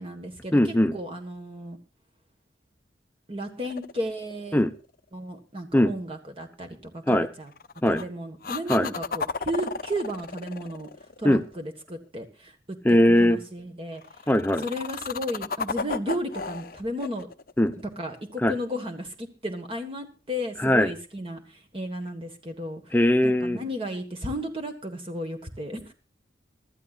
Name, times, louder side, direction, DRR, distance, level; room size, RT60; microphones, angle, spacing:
voice 1, 0.0-1.8 3.3-4.6 5.1-6.7 6.9-7.5 7.9-10.9 11.2-12.5 12.9-14.0 14.6-17.3 17.8-22.8 23.2-25.9, equal, 30° right, 4 dB, 1.4 m, -34 dB
voice 2, 0.5-0.9 4.5-4.7 5.7-5.9 7.1-7.3 7.8-8.0 8.7-8.9 11.2-11.4 12.8-13.4 14.3-14.6 17.6-17.7 18.4-18.5 20.6-20.9 22.9-23.6, left 1 dB, 10° left, 10 dB, 0.8 m, -20 dB
sound 1, 3.6-4.9 7.5-8.1 8.4-11.7 14.0-18.3 22.1-22.2, left 4 dB, 50° left, 0.7 m, -34 dB
23.5 x 13.0 x 2.4 m, 0.34 s
head